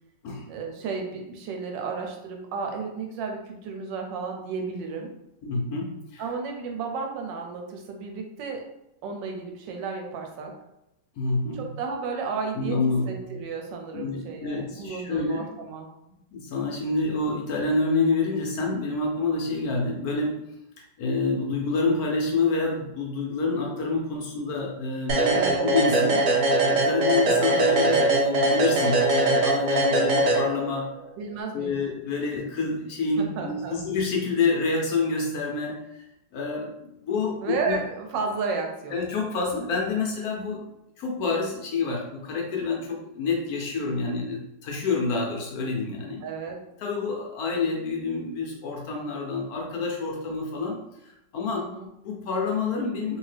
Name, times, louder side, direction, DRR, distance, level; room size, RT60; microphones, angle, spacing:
voice 1, 0.5-5.1 6.2-8.6 9.0-10.5 11.5-12.8 13.1-15.9 25.3-25.7 31.2-31.8 33.2-33.8 37.4-39.0 46.2-46.6 51.5-51.9, right 4 dB, 85° right, 3 dB, 1.3 m, -33 dB
voice 2, 5.4-6.3 11.2-11.7 12.6-13.1 13.9-15.5 16.3-20.4 20.8-26.3 26.7-31.0 31.5-36.0 36.3-37.8 38.9-40.7 41.0-46.2 46.8-51.7 52.0-53.2, left 3 dB, 70° left, -1 dB, 0.9 m, -28 dB
sound 1, 25.1-30.9, right 2 dB, 65° right, 0.8 m, -22 dB
2.8 x 2.7 x 3.2 m, 0.87 s
omnidirectional pair, 1.9 m